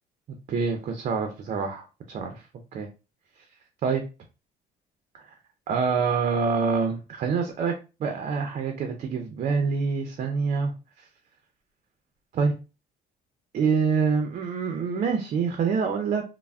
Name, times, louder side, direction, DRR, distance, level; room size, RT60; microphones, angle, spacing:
voice 1, 0.5-2.4 2.7-2.9 3.8-4.0 5.7-7.7 8.0-10.7 11.0-11.1 12.3-12.5 13.5-16.2, right 5 dB, 45° right, 5 dB, 0.5 m, -26 dB
3.3 x 2.0 x 2.2 m, 0.31 s
cardioid pair, 110°, 17 cm